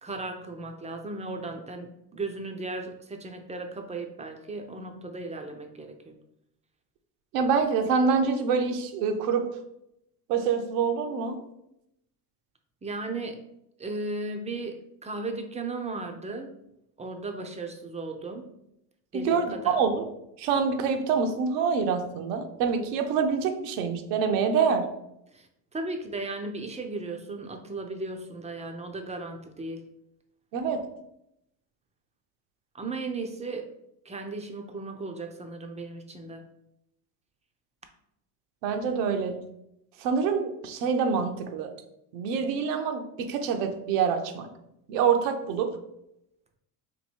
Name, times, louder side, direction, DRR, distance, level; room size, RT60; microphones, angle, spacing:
voice 1, 0.0-6.2 12.8-13.4 13.8-16.5 17.0-18.5 19.1-19.8 25.3-29.8 32.7-33.7 34.0-36.4, right 2 dB, 15° right, 5 dB, 0.4 m, -36 dB
voice 2, 7.3-9.5 10.3-11.4 19.1-20.0 20.4-24.9 30.5-30.8 38.6-39.4 40.0-41.7 42.1-44.5 44.9-45.8, right 6 dB, 80° right, 6 dB, 0.7 m, -26 dB
2.9 x 2.7 x 4.3 m, 0.81 s
supercardioid pair, 85°, 48 cm